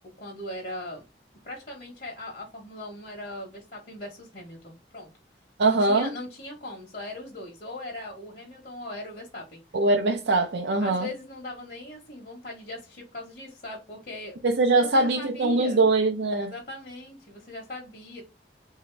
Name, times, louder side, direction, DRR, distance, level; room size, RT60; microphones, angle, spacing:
voice 1, 0.2-1.0 1.4-5.1 5.7-9.6 10.8-14.4 14.8-15.8 16.4-18.2, left 1 dB, 50° left, 1.1 m, -39 dB
voice 2, 5.6-6.1 9.7-11.1 14.4-16.5, right 2 dB, 80° right, 0.6 m, -22 dB
3.9 x 2.8 x 3.2 m
head